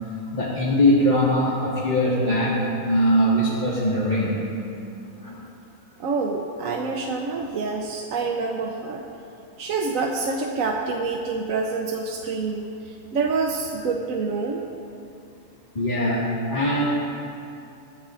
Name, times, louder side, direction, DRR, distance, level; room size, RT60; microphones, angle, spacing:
voice 1, 0.3-4.4 5.2-5.4 15.8-16.9, equal, 30° left, -8 dB, 2.1 m, -21 dB
voice 2, 6.0-9.0 9.6-14.6, right 4 dB, 60° right, 0 dB, 1.2 m, -27 dB
22.0 x 15.5 x 2.6 m, 2.6 s
omnidirectional pair, 1.7 m